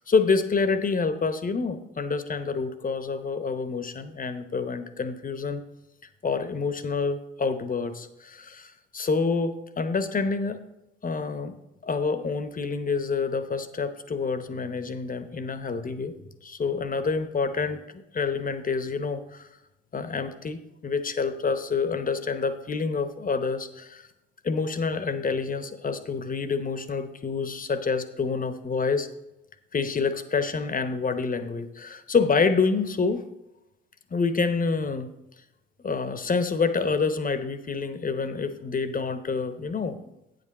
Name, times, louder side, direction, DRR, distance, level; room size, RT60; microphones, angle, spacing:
voice 1, 0.0-5.6 6.2-10.6 11.0-11.5 11.8-16.1 16.4-17.8 18.1-19.5 19.9-24.1 24.4-29.1 29.7-33.3 34.1-35.1 35.8-40.0, left 4 dB, 30° left, 11 dB, 0.9 m, -27 dB
9.3 x 7.8 x 4.2 m, 0.92 s
figure-of-eight pair, 45°, 29 cm